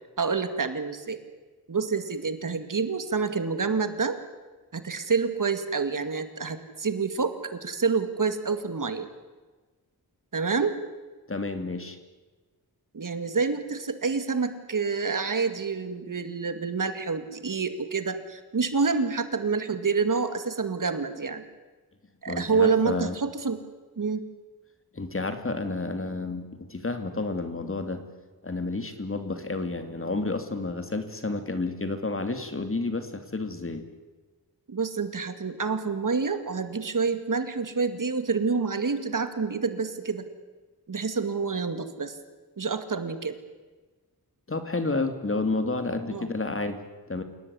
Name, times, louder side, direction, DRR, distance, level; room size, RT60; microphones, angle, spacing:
voice 1, 0.2-1.2 1.7-4.2 4.7-9.1 10.3-10.8 12.9-21.4 22.2-23.6 24.0-24.2 34.7-40.3 40.9-42.2 42.6-43.4 46.1-46.3, right 5 dB, 55° right, 10 dB, 2.3 m, -28 dB
voice 2, 11.3-12.0 22.3-23.2 24.9-28.1 28.4-33.8 44.5-46.8 47.1-47.2, left 3 dB, 35° left, 8 dB, 2.8 m, -30 dB
28.0 x 18.0 x 9.9 m, 1.3 s
wide cardioid pair, 100°, 38 cm